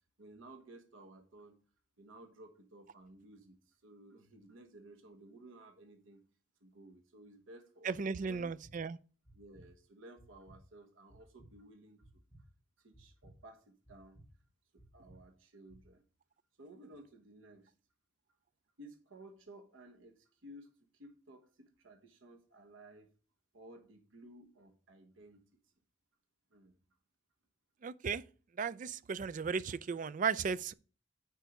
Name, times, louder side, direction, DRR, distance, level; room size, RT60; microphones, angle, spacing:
voice 1, 0.2-1.6 2.0-6.2 6.6-8.5 9.3-12.0 12.8-14.2 14.7-16.0 16.6-17.7 18.8-23.1 23.5-25.5 26.5-26.8, right 1 dB, 85° right, 1.2 m, -56 dB
voice 2, 7.8-9.0 27.8-28.2 28.6-30.7, right 5 dB, 40° right, 0.3 m, -35 dB
sound 1, 8.3-8.7 9.2-9.7 10.2-10.6 11.1-11.5 12.0-12.4 12.9-13.3 13.8-14.3 14.8-15.2 15.7-15.9, right 1 dB, 5° right, 2.7 m, -59 dB
9.1 x 4.6 x 5.2 m
head